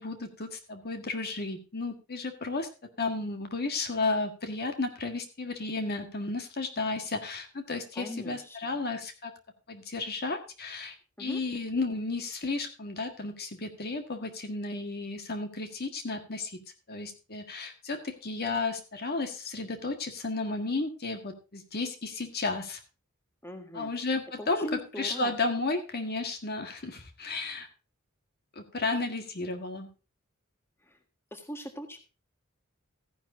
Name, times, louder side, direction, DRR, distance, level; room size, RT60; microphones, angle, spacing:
voice 1, 0.0-2.7 3.0-9.3 9.7-16.6 16.9-22.8 23.7-27.7 28.5-29.9, left 3 dB, 45° left, 6 dB, 1.6 m, -33 dB
voice 2, 7.9-8.7 11.2-11.4 23.4-23.9 24.4-25.3 31.3-32.0, left 1 dB, 10° left, 5 dB, 1.6 m, -40 dB
14.5 x 10.5 x 2.7 m, 0.33 s
head